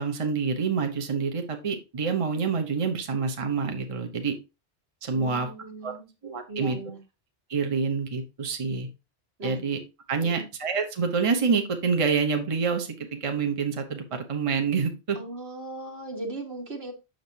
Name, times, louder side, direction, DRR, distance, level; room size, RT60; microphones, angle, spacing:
voice 1, 0.0-4.3 5.0-5.5 5.8-5.9 6.2-6.8 7.5-8.9 9.4-9.8 10.1-15.2, right 5 dB, 30° right, 0.9 m, -27 dB
voice 2, 5.1-6.1 6.5-7.0 9.4-9.6 10.2-10.5 15.2-16.9, right 2 dB, 65° right, 1.9 m, -37 dB
7.8 x 6.4 x 2.7 m
omnidirectional pair, 1.1 m